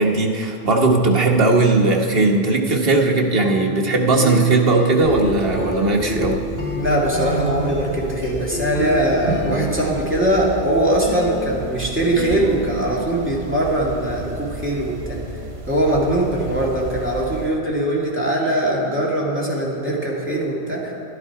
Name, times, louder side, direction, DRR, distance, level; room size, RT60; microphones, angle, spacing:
voice 1, 0.0-6.4, right 3 dB, 65° right, 1 dB, 1.4 m, -18 dB
sound 1, 3.4-10.5 11.0-12.3, left 1 dB, 15° left, 2.9 m, -29 dB
sound 2, 5.0-17.5, right 3 dB, 90° right, 1.4 m, -34 dB
voice 2, 6.8-15.2 15.7-20.9, right 1 dB, 10° right, -5 dB, 2.1 m, -21 dB
11.0 x 10.5 x 4.7 m, 2.7 s
omnidirectional pair, 1.0 m